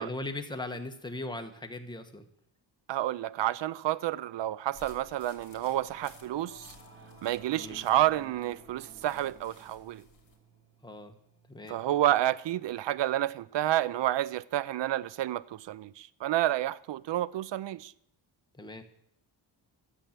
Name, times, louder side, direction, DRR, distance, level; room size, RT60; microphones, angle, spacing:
voice 1, 0.0-2.2 7.5-7.8 10.8-11.2 11.5-11.8 18.6-18.8, left 2 dB, 10° left, 1.2 m, -39 dB
voice 2, 2.9-6.7 7.2-10.0 11.7-17.9, right 13 dB, 70° right, 0.6 m, -30 dB
Singing / Musical instrument, 4.0-13.7, right 3 dB, 30° right, 3.3 m, -56 dB
sound 1, 4.7-10.4, left 5 dB, 45° left, 2.5 m, -57 dB
12.5 x 7.3 x 7.3 m
wide cardioid pair, 120°, 45 cm